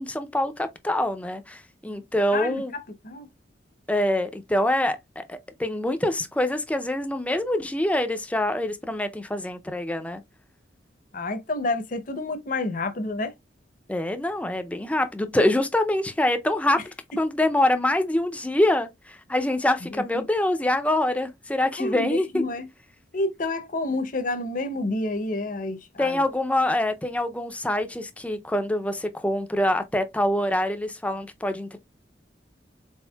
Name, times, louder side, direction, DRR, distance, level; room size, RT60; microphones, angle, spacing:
voice 1, 0.0-2.7 3.9-10.2 13.9-16.8 17.2-22.4 26.0-31.8, left 1 dB, 10° left, 0.4 m, -25 dB
voice 2, 2.3-2.6 3.0-3.3 11.1-13.3 19.8-20.3 21.8-22.7 23.1-26.2, left 2 dB, 45° left, 0.7 m, -29 dB
4.4 x 3.9 x 2.2 m
head